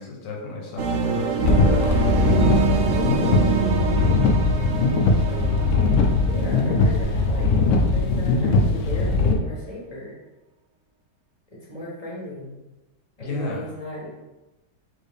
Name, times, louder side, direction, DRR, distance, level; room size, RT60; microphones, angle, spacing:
voice 1, 0.0-2.3 13.2-13.7, left 3 dB, 90° left, -1 dB, 1.5 m, -33 dB
sound 1, 0.8-7.6, right 5 dB, 85° right, 0.6 m, -26 dB
sound 2, 1.4-9.3, left 3 dB, 70° left, 0.8 m, -20 dB
sound 3, 1.9-5.6, right 4 dB, 70° right, 1.4 m, -32 dB
voice 2, 2.8-3.7 5.2-5.7 6.2-10.1 11.7-12.6 13.2-14.1, left 1 dB, 25° left, -5 dB, 1.2 m, -35 dB
3.8 x 3.5 x 3.5 m, 1.0 s
omnidirectional pair, 1.8 m